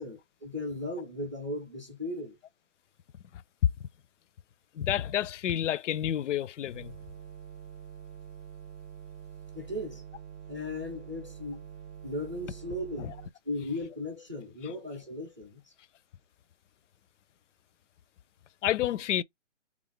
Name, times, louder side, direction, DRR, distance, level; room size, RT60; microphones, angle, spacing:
voice 1, 0.0-2.4 9.5-10.0 10.5-11.6 12.0-13.1 13.5-15.7, left 1 dB, 15° right, 0.4 m, -37 dB
voice 2, 4.8-6.9 13.0-13.1 18.6-19.2, left 11 dB, 75° left, 0.5 m, -29 dB
sound 1, 6.7-13.3, right 8 dB, 65° right, 0.6 m, -46 dB
3.5 x 2.4 x 3.7 m
hypercardioid pair, 160°, 37 cm